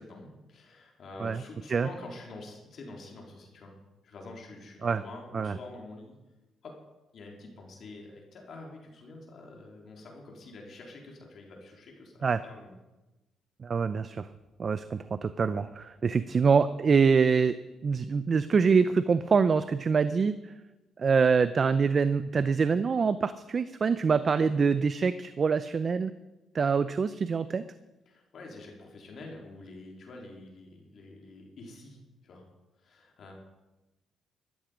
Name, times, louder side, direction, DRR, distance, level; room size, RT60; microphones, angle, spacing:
voice 1, 0.0-3.8 4.0-6.2 6.6-6.8 7.1-12.7 28.1-32.0 32.2-32.4 32.8-33.3, left 2 dB, 60° left, 0 dB, 3.7 m, -47 dB
voice 2, 13.6-14.3 14.6-17.6 17.8-20.4 21.0-26.1 26.5-27.6, right 5 dB, 40° right, 13 dB, 0.6 m, -25 dB
13.5 x 13.5 x 5.1 m, 1.1 s
cardioid pair, 90°, 0 cm